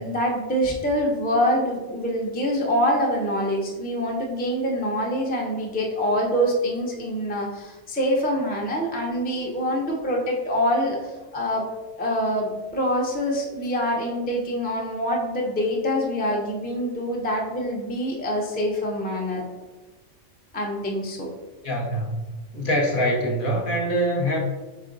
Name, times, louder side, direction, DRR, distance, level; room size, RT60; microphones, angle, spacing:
voice 1, 0.0-11.7 12.0-19.5 20.5-21.3, equal, 15° left, -2 dB, 0.4 m, -25 dB
voice 2, 21.6-22.2 22.5-24.4, equal, 50° left, 0 dB, 0.8 m, -24 dB
3.7 x 3.3 x 3.8 m, 1.2 s
omnidirectional pair, 1.3 m